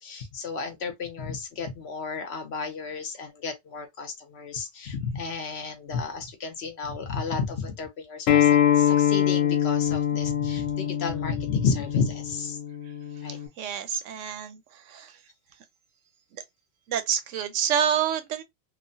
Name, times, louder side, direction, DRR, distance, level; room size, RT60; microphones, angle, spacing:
voice 1, 0.0-12.6 13.2-13.4, left 5 dB, 60° left, 0.9 m, -32 dB
Acoustic guitar, 8.3-13.5, left 10 dB, 80° left, 1.1 m, -24 dB
voice 2, 13.6-14.6 14.9-15.1 16.9-18.4, right 8 dB, 75° right, 0.9 m, -27 dB
3.0 x 2.1 x 2.6 m
omnidirectional pair, 1.3 m